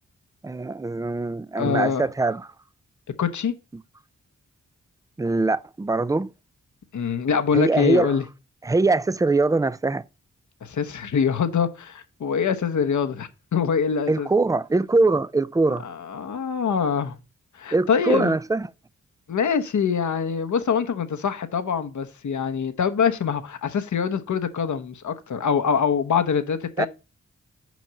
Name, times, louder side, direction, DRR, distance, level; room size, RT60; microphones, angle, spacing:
voice 1, 0.4-2.5 5.2-6.3 7.5-8.2 8.6-10.0 14.1-15.8 17.7-18.7 26.8-26.9, right 3 dB, 10° right, 0.4 m, -22 dB
voice 2, 1.6-2.0 3.2-3.5 6.9-8.2 10.6-14.3 15.8-17.1 17.6-18.3 19.3-26.9, left 6 dB, 70° left, 1.0 m, -24 dB
6.2 x 5.1 x 6.8 m
cardioid pair, 55°, 31 cm